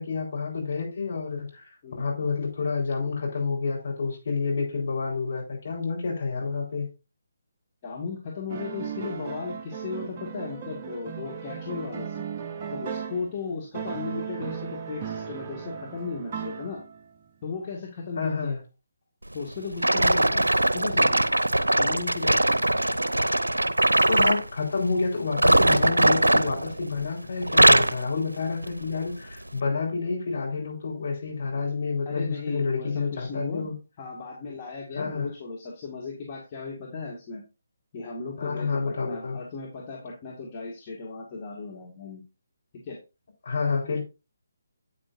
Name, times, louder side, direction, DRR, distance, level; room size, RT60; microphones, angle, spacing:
voice 1, 0.0-1.7 2.0-6.9 18.2-18.6 23.8-33.7 34.9-35.3 38.4-39.4 43.4-44.0, left 4 dB, 50° left, 4.2 m, -29 dB
voice 2, 7.8-12.3 12.6-16.8 17.4-18.6 19.3-20.5 20.7-21.2 21.8-22.5 32.1-37.4 37.9-42.2 42.8-43.0, left 4 dB, 25° left, 1.9 m, -36 dB
sound 1, 8.5-13.4 13.7-17.1, right 7 dB, 30° right, 0.8 m, -36 dB
sound 2, 19.8-24.5 25.3-27.1 27.4-28.0 28.6-28.8 29.5-29.6, right 1 dB, 80° right, 0.6 m, -21 dB
9.2 x 8.6 x 2.6 m
figure-of-eight pair, 145°, 0 cm